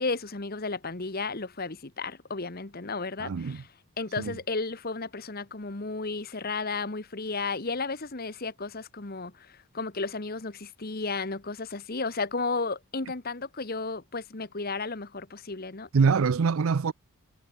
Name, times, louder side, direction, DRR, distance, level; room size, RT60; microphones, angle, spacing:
voice 1, 0.0-3.7 4.0-15.9, left 3 dB, 40° left, 1.3 m, -33 dB
voice 2, 3.2-3.6 4.2-4.3 15.9-16.9, right 5 dB, 65° right, 0.5 m, -24 dB
head